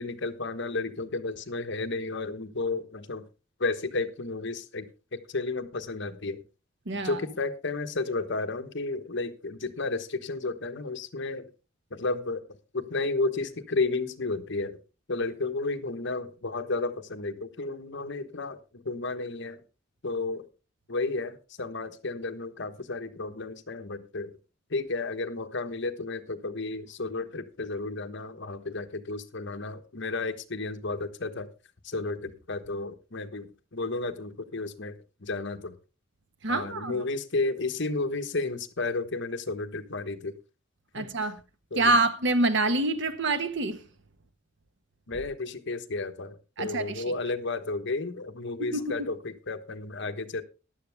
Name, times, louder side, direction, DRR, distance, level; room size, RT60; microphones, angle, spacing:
voice 1, 0.0-3.2 3.6-6.4 6.9-11.5 11.9-14.8 15.1-19.6 20.0-20.4 20.9-24.3 24.7-31.5 31.8-35.7 36.5-40.3 40.9-41.1 41.7-41.9 45.1-50.4, left 3 dB, 65° left, 1.2 m, -32 dB
voice 2, 6.9-7.2 36.4-37.0 40.9-41.4 41.7-43.8 46.6-47.0 48.7-48.9, right 2 dB, 65° right, 1.4 m, -26 dB
14.5 x 10.5 x 3.5 m
head